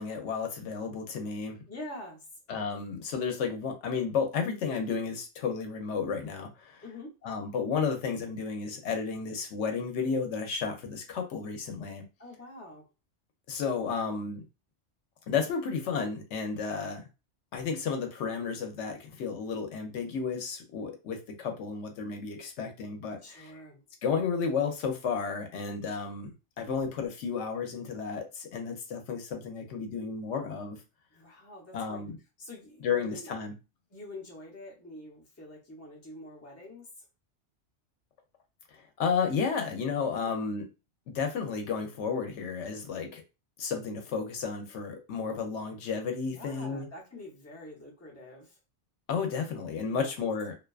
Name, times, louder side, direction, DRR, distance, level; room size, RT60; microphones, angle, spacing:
voice 1, 0.0-1.6 2.5-6.8 7.2-12.0 13.5-14.4 15.3-17.1 17.5-23.6 24.0-30.8 31.7-32.2 32.8-33.5 38.7-40.7 41.1-43.2 43.6-46.9 49.1-50.5, left 5 dB, 75° left, 0.9 m, -32 dB
voice 2, 1.7-2.3 6.8-7.2 12.2-12.9 23.2-23.8 31.1-32.0 32.4-33.3 33.9-37.1 40.1-40.3 46.3-48.6 49.8-50.1, left 1 dB, 15° left, 0.6 m, -46 dB
2.5 x 2.2 x 2.3 m
omnidirectional pair, 1.2 m